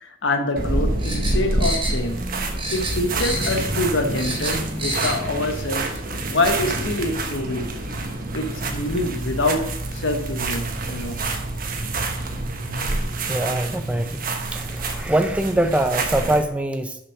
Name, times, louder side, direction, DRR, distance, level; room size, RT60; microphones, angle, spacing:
voice 1, 0.0-2.2 2.7-5.9 6.3-7.7 8.3-11.2, left 2 dB, 75° left, 1.1 m, -25 dB
sound 1, 0.6-16.4, right 2 dB, 45° right, 1.2 m, -27 dB
sound 2, 1.0-2.3 2.6-3.7 4.0-5.2 5.5-5.6, right 1 dB, 25° right, 2.3 m, -29 dB
sound 3, 7.9-15.0, right 3 dB, 25° left, 1.5 m, -36 dB
voice 2, 13.3-14.2 14.5-17.0, right 1 dB, 5° right, 0.4 m, -23 dB
6.9 x 5.8 x 6.1 m
head